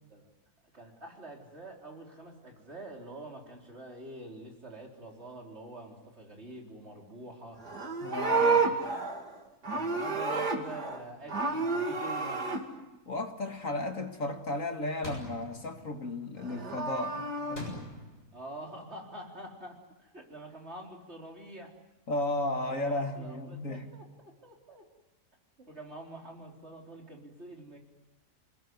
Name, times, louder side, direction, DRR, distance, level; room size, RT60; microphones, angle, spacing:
voice 1, 0.7-7.6 8.2-8.8 9.7-12.6 18.3-21.7 22.7-24.9 25.6-27.8, right 1 dB, 40° right, 0 dB, 4.3 m, -46 dB
Livestock farm animals working animals, 7.6-11.0 11.3-12.6 16.4-17.6, right 4 dB, 75° right, 3.1 m, -30 dB
voice 2, 8.0-8.7 13.1-17.8 22.1-23.9, left 2 dB, 55° left, 5 dB, 2.2 m, -34 dB
sound 1, 15.0-15.5 17.6-18.2, equal, 40° left, 7.7 m, -40 dB
28.5 x 20.0 x 9.5 m, 0.99 s
omnidirectional pair, 1.7 m